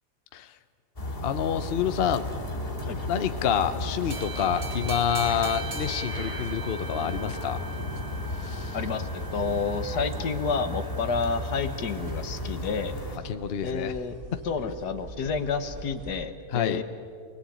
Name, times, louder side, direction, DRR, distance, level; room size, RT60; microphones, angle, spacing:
sound 1, 1.0-13.2, left 1 dB, 20° left, 3.0 m, -34 dB
voice 1, 1.2-2.3 3.1-7.6 8.4-8.8 13.2-13.9 14.6-14.7 16.5-16.8, left 8 dB, 45° left, 10 dB, 0.9 m, -28 dB
sound 2, 4.0-12.1, right 4 dB, 60° right, 2.5 m, -41 dB
sound 3, 6.1-16.3, right 3 dB, 35° right, 1.3 m, -47 dB
voice 2, 8.7-13.0 13.6-14.1 14.4-16.8, left 5 dB, 80° left, 9 dB, 1.8 m, -30 dB
28.0 x 20.5 x 8.6 m, 2.4 s
omnidirectional pair, 1.7 m